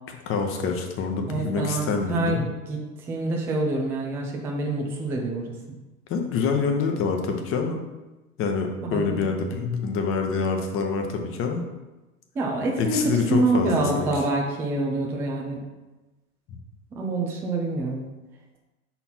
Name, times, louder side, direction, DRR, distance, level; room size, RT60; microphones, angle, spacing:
voice 1, 0.1-2.4 6.1-7.8 8.4-11.6 12.8-14.2 16.5-16.6, left 5 dB, 30° left, 4 dB, 0.9 m, -26 dB
voice 2, 1.3-2.8 3.1-5.4 8.9-9.3 12.4-13.0 13.3-15.6 17.0-18.0, right 2 dB, 5° right, 0 dB, 0.3 m, -26 dB
5.5 x 4.2 x 4.2 m, 1.1 s
hypercardioid pair, 100°, 45 cm